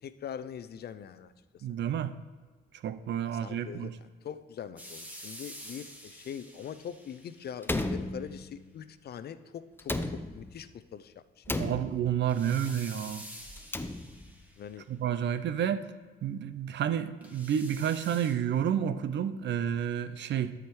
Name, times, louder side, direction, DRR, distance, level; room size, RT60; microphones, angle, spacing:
voice 1, 0.0-1.7 3.3-3.9 4.2-11.7 12.4-12.6 14.6-14.8 20.3-20.5, left 8 dB, 55° left, 13 dB, 0.6 m, -43 dB
voice 2, 1.6-2.1 2.8-3.9 11.5-13.2 14.9-15.9 16.2-20.5, right 9 dB, 65° right, 13 dB, 0.6 m, -30 dB
sound 1, 4.8-7.8 12.3-14.8 17.2-18.3, equal, 5° right, 1.9 m, -48 dB
Slam, 7.6-8.8 9.8-10.7 11.5-12.4 13.5-14.4, left 2 dB, 10° left, 0.6 m, -35 dB
12.5 x 4.9 x 4.6 m, 1.4 s
cardioid pair, 90°, 20 cm